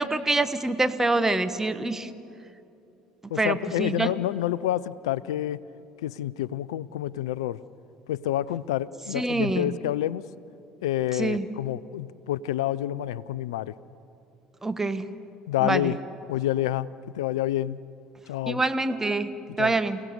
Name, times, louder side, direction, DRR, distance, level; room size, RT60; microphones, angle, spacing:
voice 1, 0.0-2.1 3.2-4.1 9.1-9.8 11.2-11.5 14.6-15.1 15.6-15.9 18.5-20.0, right 2 dB, 15° right, 10 dB, 1.4 m, -26 dB
voice 2, 3.3-5.6 6.0-7.6 8.1-10.2 10.8-13.7 15.5-16.0 16.3-16.9 17.1-17.8 18.3-18.6 19.6-19.8, left 13 dB, 75° left, 20 dB, 0.4 m, -28 dB
29.0 x 17.5 x 6.8 m, 2.7 s
hypercardioid pair, 60°, 3 cm